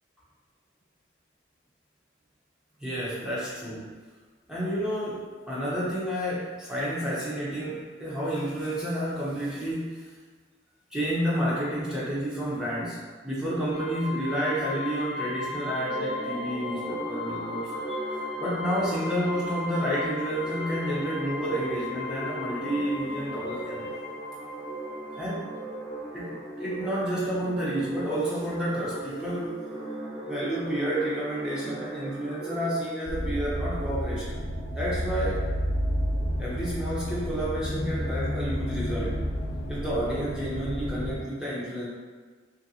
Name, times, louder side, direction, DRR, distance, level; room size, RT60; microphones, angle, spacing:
voice 1, 2.8-4.0 4.5-10.1 10.9-18.0 18.4-24.0 25.1-25.5 26.1-29.6 30.2-34.4 34.7-35.5 36.4-39.2 39.7-41.9, equal, 5° right, -8 dB, 0.6 m, -30 dB
sound 1, 13.7-26.2, left 3 dB, 50° left, 0.6 m, -37 dB
sound 2, 15.6-32.7, right 1 dB, 70° right, 0.7 m, -38 dB
sound 3, 33.1-41.2, equal, 90° left, 0.7 m, -30 dB
3.1 x 2.5 x 2.7 m, 1.5 s
head